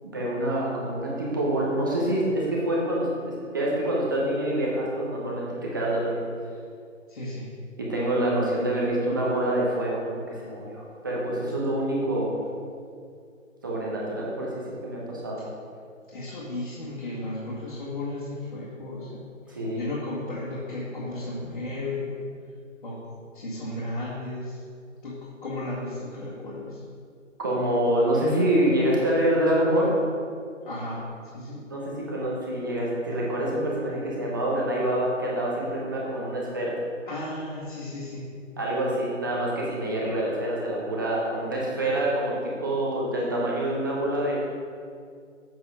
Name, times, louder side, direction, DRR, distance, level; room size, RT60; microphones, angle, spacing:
voice 1, 0.0-6.2 7.8-12.3 13.6-14.5 14.8-15.4 19.5-19.9 27.4-29.9 31.7-36.7 38.6-44.3, right 1 dB, 15° right, -4 dB, 0.9 m, -26 dB
voice 2, 7.1-7.5 16.1-22.2 22.8-23.0 23.3-24.6 25.0-26.8 30.7-31.0 31.3-31.7 37.1-38.3, left 2 dB, 40° left, -9 dB, 1.9 m, -34 dB
7.5 x 6.8 x 5.0 m, 2.2 s
figure-of-eight pair, 160°, 40 cm